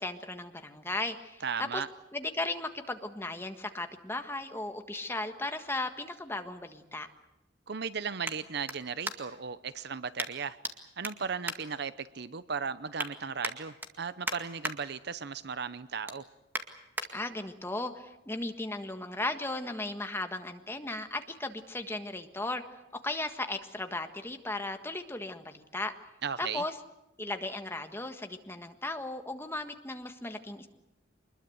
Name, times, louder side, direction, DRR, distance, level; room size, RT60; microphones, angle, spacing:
voice 1, 0.0-1.4 1.7-1.8 2.1-7.1 17.1-22.6 23.0-25.9 26.4-26.7 27.2-30.7, left 2 dB, 15° left, 6 dB, 1.6 m, -36 dB
voice 2, 1.4-1.9 7.7-10.6 11.0-16.2 26.2-26.6, right 6 dB, 60° right, 15 dB, 0.8 m, -36 dB
sound 1, 5.7-9.5 10.2-10.7 11.0-12.3 12.7-13.1 13.4-14.8 15.2-15.4 15.8-17.1 17.6-17.7, right 1 dB, 10° right, 2.0 m, -39 dB
25.0 x 21.0 x 8.0 m, 0.89 s
head